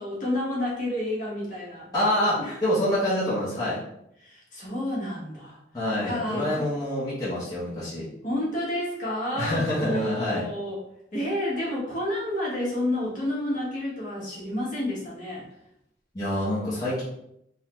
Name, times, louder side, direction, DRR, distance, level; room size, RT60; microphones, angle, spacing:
voice 1, 0.0-1.9 2.4-2.6 4.2-5.6 6.0-6.7 8.2-10.8 11.1-15.5, left 1 dB, 50° left, -5 dB, 1.2 m, -30 dB
voice 2, 1.9-3.8 5.7-8.1 9.3-10.5 16.1-17.0, left 1 dB, 20° left, -10 dB, 0.8 m, -26 dB
3.6 x 2.2 x 2.9 m, 0.79 s
head